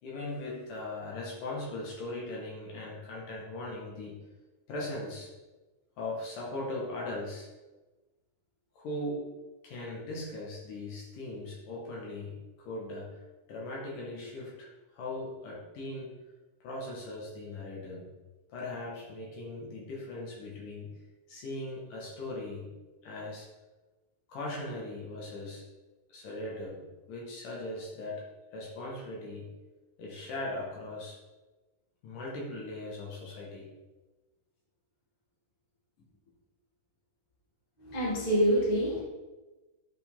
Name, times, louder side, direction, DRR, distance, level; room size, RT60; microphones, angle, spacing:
voice 1, 0.0-4.1 4.7-5.3 6.0-7.5 8.8-9.3 9.6-13.2 13.5-16.2 16.6-18.1 18.5-20.9 21.3-22.7 23.0-23.5 24.3-25.7 26.1-28.3 28.5-29.5 30.0-31.2 32.0-33.7, left 2 dB, 70° left, -3 dB, 3.3 m, -39 dB
voice 2, 37.8-39.0, equal, 15° left, -5 dB, 1.6 m, -26 dB
10.5 x 5.9 x 3.8 m, 1.1 s
omnidirectional pair, 4.0 m